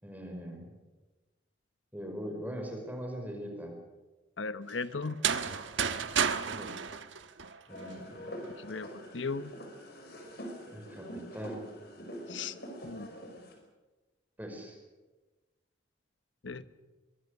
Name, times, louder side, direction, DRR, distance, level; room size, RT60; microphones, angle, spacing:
voice 1, 0.0-0.7 1.9-3.7 6.4-6.8 7.7-8.6 10.7-11.6 14.4-14.8 16.6-16.7, equal, 10° right, 2 dB, 5.2 m, -41 dB
voice 2, 4.4-5.2 8.6-9.5 12.3-12.5 12.8-13.1 16.4-16.6, left 4 dB, 85° left, 13 dB, 1.1 m, -37 dB
sound 1, 5.0-7.9, right 7 dB, 80° right, 1.3 m, -31 dB
sound 2, 7.7-13.5, equal, 55° left, 5.7 m, -45 dB
24.5 x 22.0 x 6.7 m, 1.2 s
head